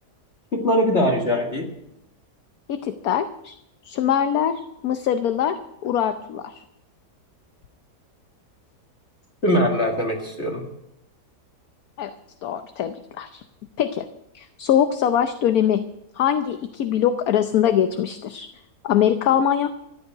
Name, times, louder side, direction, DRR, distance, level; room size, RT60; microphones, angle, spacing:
voice 1, 0.5-1.7 9.4-10.6, equal, 40° left, 0 dB, 2.2 m, -21 dB
voice 2, 2.7-3.5 3.8-6.6 12.0-12.1 12.4-13.4 13.8-14.1 14.3-15.8 16.2-18.5 18.8-19.7, left 9 dB, 70° left, 9 dB, 1.2 m, -22 dB
14.5 x 8.5 x 9.2 m, 0.82 s
omnidirectional pair, 1.7 m